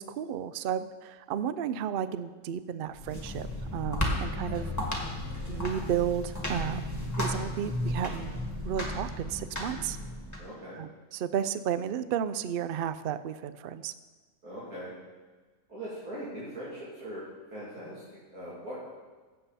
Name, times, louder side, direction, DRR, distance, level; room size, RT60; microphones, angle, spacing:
voice 1, 0.0-4.7 5.5-6.8 7.2-10.0 10.8-13.9, right 9 dB, 65° right, 13 dB, 0.5 m, -33 dB
sound 1, 2.9-10.4, left 1 dB, 10° left, 1.8 m, -34 dB
voice 2, 10.4-10.8 14.4-14.9 15.7-17.2 17.5-18.9, right 1 dB, 85° right, -9 dB, 3.2 m, -40 dB
16.0 x 7.7 x 4.2 m, 1.3 s
omnidirectional pair, 1.5 m